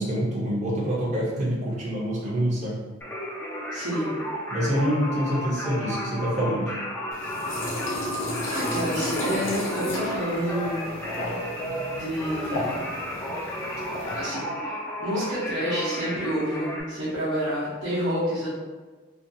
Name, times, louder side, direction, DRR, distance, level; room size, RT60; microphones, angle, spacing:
voice 1, 0.0-2.8 4.5-6.8, equal, 40° right, -6 dB, 0.6 m, -26 dB
Singing, 3.0-16.8, equal, 10° left, 0.4 m, -33 dB
voice 2, 3.7-4.1 8.5-10.9 11.9-12.8 14.1-18.5, equal, 85° right, -12 dB, 0.8 m, -29 dB
sound 1, 7.1-14.2, left 1 dB, 80° left, 0.6 m, -33 dB
2.5 x 2.3 x 2.6 m, 1.3 s
head